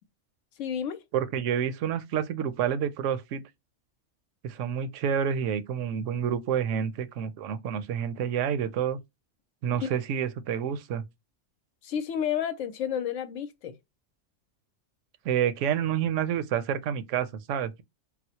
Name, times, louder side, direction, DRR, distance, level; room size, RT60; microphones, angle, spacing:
voice 1, 0.6-1.0 9.8-10.0 11.8-13.7, left 9 dB, 80° left, 0.9 m, -31 dB
voice 2, 1.1-3.4 4.4-9.0 9.6-11.0 15.2-17.8, right 8 dB, 75° right, 0.9 m, -28 dB
4.2 x 2.0 x 2.7 m
omnidirectional pair, 1.3 m